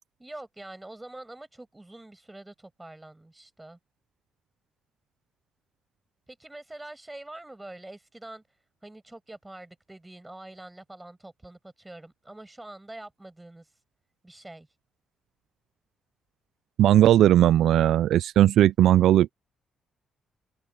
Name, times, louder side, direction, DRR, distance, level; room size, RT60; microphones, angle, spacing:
voice 1, 0.2-3.8 6.3-8.4 8.8-13.7 14.2-14.7, right 2 dB, 10° right, 6.3 m, -45 dB
voice 2, 16.8-19.3, right 12 dB, 75° right, 0.4 m, -18 dB
cardioid pair, 90°, 0 cm